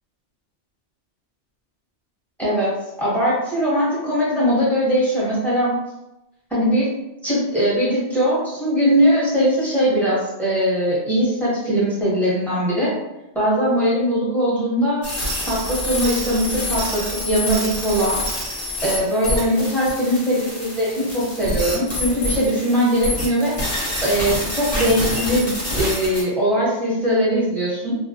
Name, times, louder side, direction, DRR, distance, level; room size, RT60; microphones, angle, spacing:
voice 1, 2.4-2.7 3.0-5.7 6.5-6.9 7.2-12.9 13.3-15.0 15.5-18.2 18.8-23.5 24.0-28.0, equal, ahead, -8 dB, 0.7 m, -20 dB
sound 1, 15.0-26.2, left 1 dB, 40° left, 0.8 m, -27 dB
2.3 x 2.0 x 2.6 m, 0.94 s
omnidirectional pair, 1.2 m